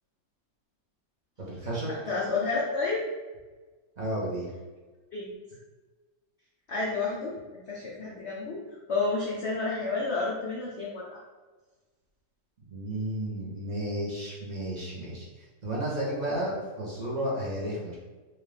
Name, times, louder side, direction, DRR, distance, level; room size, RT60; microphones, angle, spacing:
voice 1, 1.4-2.0 4.0-4.5 12.7-18.0, right 1 dB, 50° right, -6 dB, 0.5 m, -32 dB
voice 2, 2.1-3.0 5.1-5.3 6.7-7.4 7.7-8.6 8.9-11.2, left 3 dB, 80° left, -4 dB, 0.5 m, -30 dB
4.4 x 2.5 x 3.3 m, 1.3 s
omnidirectional pair, 2.0 m